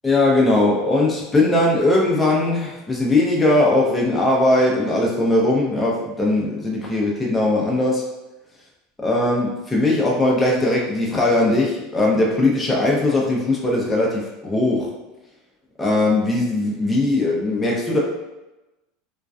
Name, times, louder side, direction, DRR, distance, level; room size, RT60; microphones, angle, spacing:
voice 1, 0.0-8.0 9.0-14.9 15.8-18.0, left 2 dB, 15° left, -3 dB, 0.5 m, -19 dB
2.4 x 2.2 x 2.3 m, 1.0 s
hypercardioid pair, 100°, 0 cm